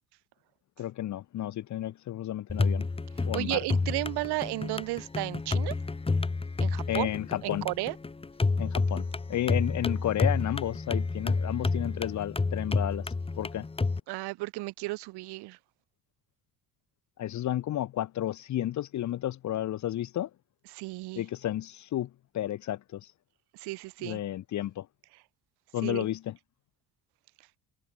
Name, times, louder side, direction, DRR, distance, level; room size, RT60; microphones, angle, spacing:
voice 1, 0.8-2.9 3.2-3.6 6.9-7.7 8.6-13.7 17.2-20.3 21.1-23.1 24.0-24.9 25.7-26.4, left 12 dB, 45° left, 1.2 m, -32 dB
sound 1, 2.5-14.0, left 3 dB, 15° left, 2.9 m, -30 dB
voice 2, 3.3-5.7 6.6-7.1 7.4-8.0 14.1-15.6 20.7-21.2 23.5-24.2 25.8-26.1, right 21 dB, 80° right, 1.9 m, -33 dB
cardioid pair, 145°, 39 cm